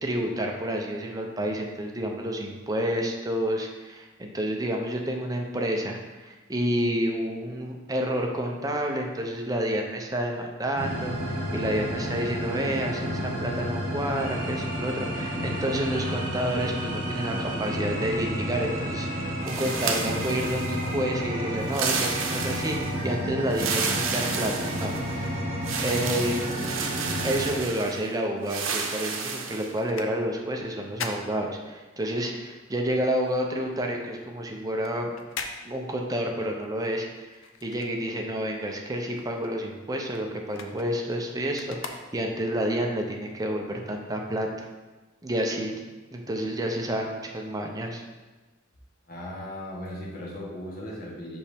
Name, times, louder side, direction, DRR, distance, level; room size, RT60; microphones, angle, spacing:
voice 1, 0.0-25.4 25.8-26.4 27.2-35.1 35.6-37.3 37.6-44.7 45.2-45.8 46.1-48.0, right 1 dB, 20° right, 2 dB, 0.6 m, -29 dB
sound 1, 10.8-27.5, equal, 45° right, 2.1 m, -31 dB
sound 2, 19.5-21.0 21.6-23.0 23.5-25.2 25.6-28.0 28.5-29.7, right 5 dB, 80° right, 0.7 m, -31 dB
sound 3, 28.6-32.2 32.5-38.5 38.8-42.6 43.1-43.2, left 5 dB, 75° left, 0.5 m, -42 dB
voice 2, 49.1-51.4, left 1 dB, 50° left, -4 dB, 1.2 m, -37 dB
5.5 x 5.3 x 3.4 m, 1.2 s
head